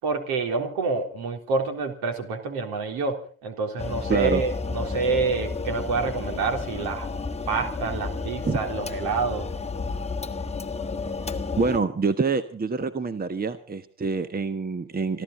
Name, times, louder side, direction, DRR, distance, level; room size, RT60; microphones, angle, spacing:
voice 1, 0.0-7.1 7.5-9.5, right 4 dB, 60° right, 5 dB, 3.7 m, -27 dB
sound 1, 3.8-11.8, left 4 dB, 15° left, 1.4 m, -31 dB
voice 2, 4.1-4.4 8.4-8.6 11.6-15.2, right 4 dB, 20° right, 12 dB, 1.3 m, -26 dB
27.0 x 12.5 x 4.0 m, 0.42 s
figure-of-eight pair, 50°, 41 cm